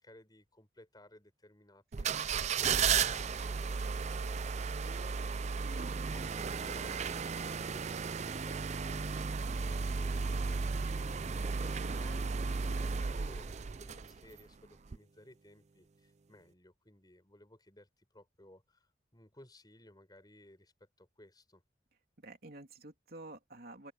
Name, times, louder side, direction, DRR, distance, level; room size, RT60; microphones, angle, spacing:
voice 1, 0.0-2.2 2.7-5.6 6.0-20.7 21.0-21.6, left 1 dB, 20° left, 7.3 m, -58 dB
sound 1, 1.9-14.4 14.9-15.0, right 5 dB, 40° right, 0.5 m, -34 dB
voice 2, 5.6-5.9 22.2-23.9, right 2 dB, 55° right, 3.1 m, -49 dB
open air
head